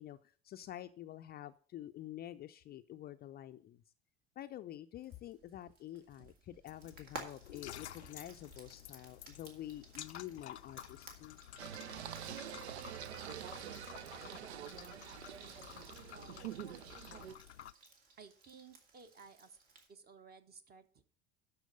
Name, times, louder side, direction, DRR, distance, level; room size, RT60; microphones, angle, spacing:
voice 1, 0.0-3.8 4.4-11.4, left 12 dB, 30° left, 9 dB, 0.5 m, -48 dB
Frying (food), 5.0-19.9, right 3 dB, 55° right, 2.5 m, -57 dB
sound 1, 6.7-17.7, left 11 dB, 80° left, 0.5 m, -52 dB
Singing, 11.6-17.3, right 11 dB, 75° right, 0.5 m, -46 dB
voice 2, 16.1-16.6 18.2-19.6 19.9-21.0, right 5 dB, 30° right, 10 dB, 1.1 m, -57 dB
12.5 x 4.5 x 6.6 m, 0.41 s
figure-of-eight pair, 65°, 33 cm